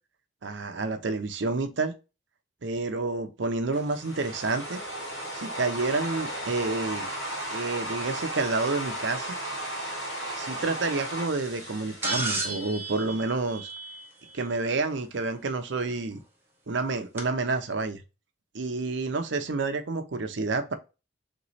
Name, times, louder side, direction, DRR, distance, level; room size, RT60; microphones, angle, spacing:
voice 1, 0.4-1.9 2.6-4.8 5.3-7.1 7.5-9.4 10.3-13.7 14.3-16.2 16.7-18.0 18.5-20.7, right 3 dB, 65° right, 0.6 m, -29 dB
sound 1, 3.7-12.9, right 1 dB, 90° left, 1.9 m, -35 dB
sound 2, 12.0-14.3 15.9-16.0 17.2-17.3, right 2 dB, 10° right, 0.9 m, -32 dB
3.6 x 3.1 x 4.0 m
head